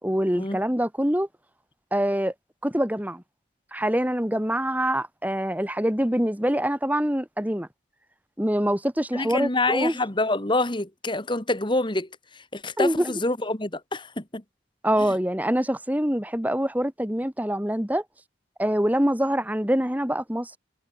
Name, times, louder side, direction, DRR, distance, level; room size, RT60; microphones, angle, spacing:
voice 1, 0.0-1.3 1.9-2.3 2.6-3.2 3.7-7.7 8.4-10.0 12.8-13.1 14.8-18.0 18.6-20.6, equal, 10° right, 1.9 m, -25 dB
voice 2, 9.1-12.1 12.5-14.4, left 2 dB, 25° left, 2.0 m, -26 dB
head